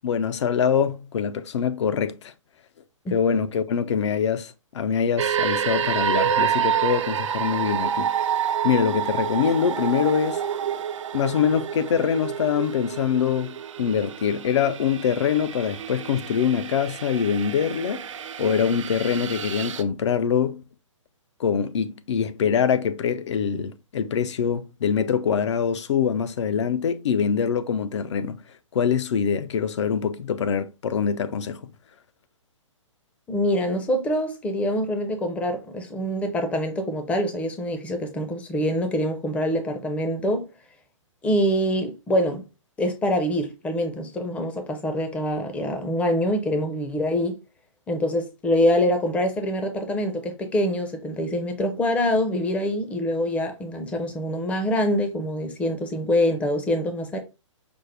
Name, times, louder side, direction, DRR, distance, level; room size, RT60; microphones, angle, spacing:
voice 1, 0.0-2.3 3.1-8.3 8.6-10.4 11.1-18.1 18.4-20.6 21.4-28.4 28.7-31.7, left 7 dB, 60° left, 0.5 m, -24 dB
sound 1, 5.2-19.8, right 9 dB, 70° right, 0.5 m, -28 dB
voice 2, 33.3-40.5 41.2-42.5 42.8-47.3 47.9-57.2, equal, 10° left, 0.5 m, -25 dB
5.1 x 2.0 x 3.2 m
hypercardioid pair, 140°, 17 cm